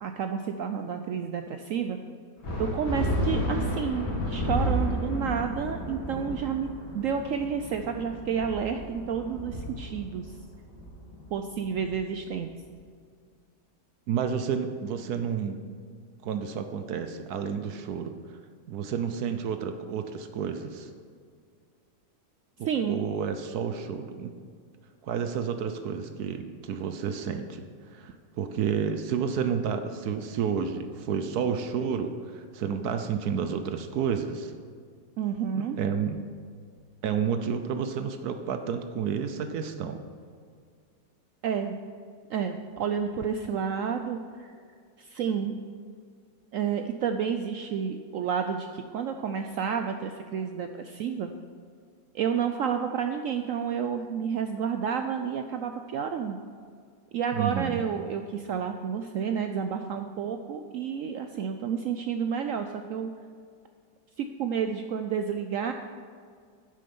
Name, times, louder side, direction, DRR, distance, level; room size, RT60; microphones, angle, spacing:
voice 1, 0.0-2.0 2.6-10.3 11.3-12.5 22.6-23.0 35.2-35.8 41.4-41.8 42.3-44.5 45.0-45.6 46.5-51.3 52.1-56.4 57.1-63.1 64.2-65.7, right 7 dB, 85° right, 6 dB, 0.7 m, -30 dB
sound 1, 2.4-12.4, equal, 70° left, 3.3 m, -32 dB
voice 2, 14.1-15.6 16.2-18.4 18.7-20.9 22.9-24.3 25.0-27.6 27.9-34.5 35.6-36.2 37.0-40.0 57.3-57.8, right 7 dB, 65° right, 8 dB, 1.1 m, -30 dB
10.0 x 7.6 x 5.4 m, 2.1 s
omnidirectional pair, 1.9 m